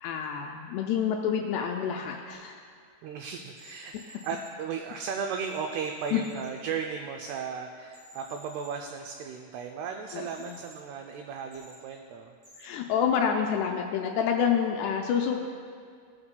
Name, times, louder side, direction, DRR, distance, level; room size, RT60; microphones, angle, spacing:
voice 1, 0.0-2.6 6.1-6.2 10.1-10.6 12.6-15.4, left 7 dB, 85° left, 2 dB, 2.5 m, -28 dB
sound 1, 2.3-2.4 3.6-4.5 5.4-6.5 7.9-8.7 10.3-10.8 11.5-11.8 12.4-12.7, equal, 40° right, 3.1 m, -52 dB
voice 2, 3.0-12.3, right 6 dB, 85° right, 4 dB, 2.3 m, -36 dB
17.0 x 8.7 x 2.2 m, 2.1 s
omnidirectional pair, 5.2 m